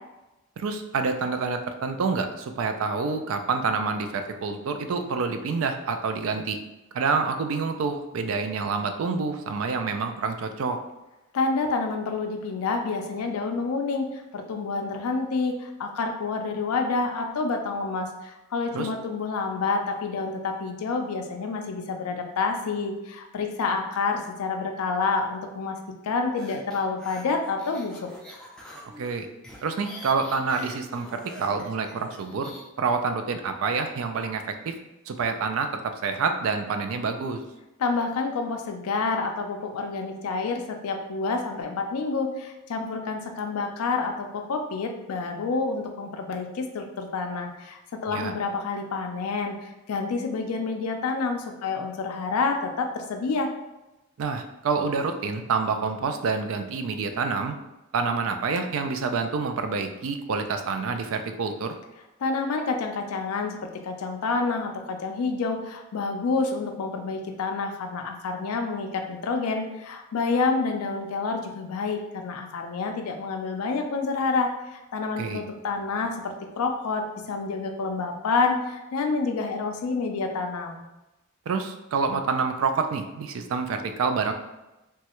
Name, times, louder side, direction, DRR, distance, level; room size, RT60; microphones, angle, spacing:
voice 1, 0.6-6.6 6.9-10.8 18.7-18.9 29.0-29.3 29.6-34.7 35.1-37.4 48.1-48.3 54.2-57.6 57.9-61.8 75.2-75.4 81.5-84.3, right 4 dB, 75° right, 7 dB, 0.3 m, -27 dB
voice 2, 11.3-25.8 26.0-28.1 37.8-53.5 62.2-80.8, left 4 dB, 85° left, 4 dB, 0.4 m, -28 dB
sound 1, 26.4-32.6, left 1 dB, 5° left, 0.4 m, -45 dB
3.1 x 2.3 x 2.9 m, 0.99 s
head